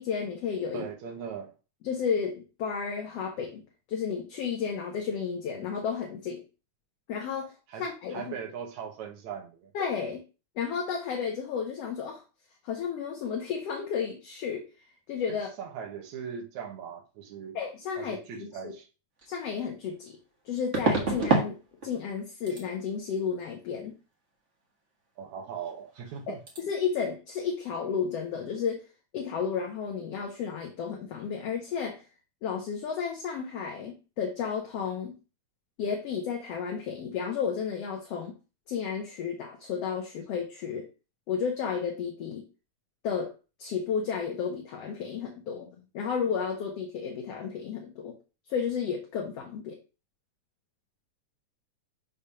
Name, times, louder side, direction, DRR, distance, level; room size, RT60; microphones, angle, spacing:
voice 1, 0.0-0.9 1.8-3.6 3.9-6.4 7.1-7.5 7.8-8.4 9.7-10.2 10.6-12.2 12.6-14.7 15.1-15.5 17.5-18.5 19.3-20.1 20.5-21.6 21.8-24.0 26.3-28.8 29.1-32.0 32.4-35.1 35.8-38.3 38.7-40.9 41.3-42.4 43.0-43.3 43.6-48.1 48.5-49.8, left 6 dB, 65° left, 0 dB, 2.0 m, -32 dB
voice 2, 0.7-1.5 7.7-7.8 8.1-9.7 15.3-17.6 17.9-18.9 25.2-26.4, right 7 dB, 75° right, 2 dB, 2.6 m, -39 dB
sound 1, 19.2-19.3 20.7-21.5 21.8-22.2 22.5-22.6 25.6-25.7 25.9-26.2 26.5-26.6, right 3 dB, 30° right, 1.4 m, -27 dB
6.7 x 3.4 x 5.7 m, 0.32 s
omnidirectional pair, 3.3 m